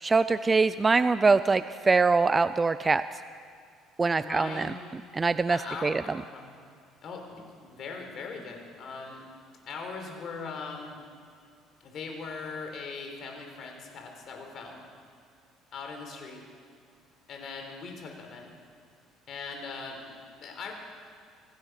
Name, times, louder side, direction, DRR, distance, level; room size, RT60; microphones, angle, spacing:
voice 1, 0.0-3.0 4.0-4.7 5.1-6.0, right 4 dB, 20° right, 13 dB, 0.4 m, -23 dB
voice 2, 4.1-5.0 5.5-6.6 7.0-9.2 9.7-11.0 11.8-14.8 15.7-16.4 17.3-18.5 19.3-20.7, left 4 dB, 50° left, 3 dB, 4.5 m, -40 dB
26.5 x 15.5 x 6.6 m, 2.2 s
cardioid pair, 125°, 0 cm